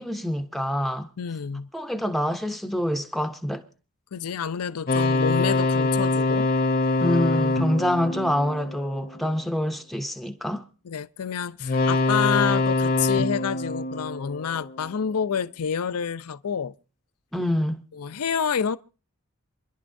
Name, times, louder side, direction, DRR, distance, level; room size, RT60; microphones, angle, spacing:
voice 1, 0.0-1.1 1.7-3.6 7.0-10.6 17.3-17.8, left 1 dB, ahead, 0.6 m, -26 dB
voice 2, 1.2-1.7 4.1-6.5 10.8-16.7 17.9-18.8, left 7 dB, 85° left, 0.5 m, -28 dB
sound 1, 4.9-9.3 11.6-14.9, left 2 dB, 40° left, 0.7 m, -24 dB
27.5 x 11.0 x 2.6 m
head